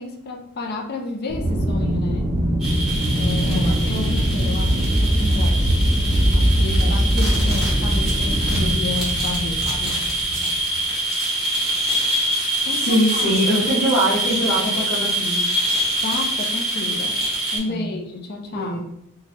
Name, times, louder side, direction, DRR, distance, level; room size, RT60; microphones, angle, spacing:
voice 1, 0.0-2.3 3.1-5.9 6.3-10.1 12.6-13.8 16.0-17.2 17.5-18.8, left 3 dB, 45° left, 2 dB, 0.4 m, -31 dB
Aircraft, 1.3-10.8, equal, 30° right, 0.6 m, -21 dB
sound 1, 2.6-17.6, right 1 dB, ahead, 1.1 m, -25 dB
voice 2, 3.4-3.7 6.8-7.0 12.8-15.5 17.7-17.9 18.5-18.8, equal, 70° left, -8 dB, 0.8 m, -22 dB
sound 2, 8.0-9.3 9.8-10.6 11.1-15.8 16.2-16.3 16.7-16.8, right 3 dB, 60° right, 0.8 m, -42 dB
3.2 x 2.2 x 2.9 m, 0.75 s
head